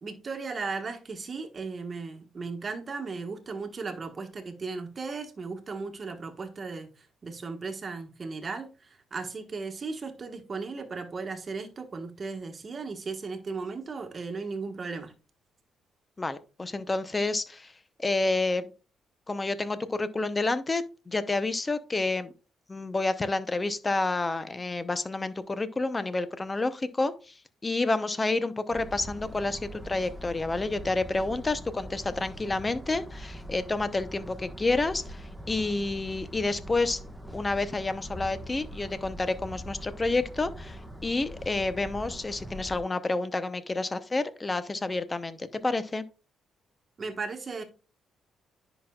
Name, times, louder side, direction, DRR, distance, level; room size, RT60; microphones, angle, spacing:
voice 1, 0.0-15.1 47.0-47.6, right 4 dB, 35° right, 1.3 m, -36 dB
voice 2, 16.2-17.7 18.0-18.7 19.3-22.3 22.7-27.3 27.6-37.0 37.3-46.0, left 3 dB, 20° left, 0.7 m, -29 dB
sound 1, 28.7-42.8, equal, ahead, 1.4 m, -42 dB
10.0 x 5.9 x 2.3 m
cardioid pair, 105°, 0 cm